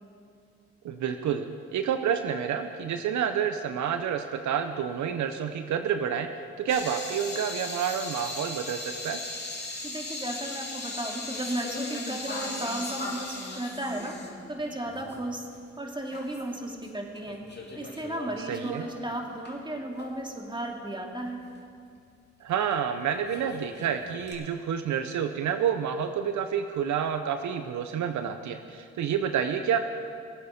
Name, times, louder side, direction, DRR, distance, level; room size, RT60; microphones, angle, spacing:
voice 1, 0.8-6.3 6.6-9.2 18.5-18.9 22.4-29.8, right 8 dB, 80° right, 8 dB, 0.8 m, -29 dB
sound 1, 6.7-15.3 15.5-15.6 16.1-16.9 17.1-19.5 20.0-20.1 22.6-22.7 23.1-24.3, left 2 dB, 35° left, 2.7 m, -38 dB
voice 2, 9.8-14.1 14.5-15.5 15.8-17.4 17.8-21.4, right 1 dB, 15° right, 1 dB, 2.4 m, -34 dB
20.0 x 8.2 x 5.2 m, 2.3 s
supercardioid pair, 55°, 29 cm